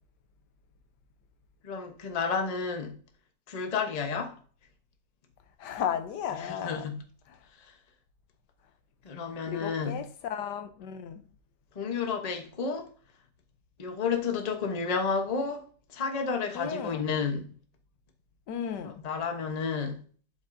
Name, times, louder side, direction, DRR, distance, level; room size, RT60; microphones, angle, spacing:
voice 1, 1.6-3.0 3.5-4.4 6.4-7.0 7.6-7.7 9.0-10.0 11.7-12.9 13.8-17.5 18.8-20.0, left 5 dB, 30° left, 0.8 m, -31 dB
voice 2, 5.6-6.9 9.5-11.2 16.5-17.1 18.5-19.0, left 8 dB, 75° left, 1.3 m, -34 dB
11.5 x 5.3 x 2.6 m
omnidirectional pair, 1.9 m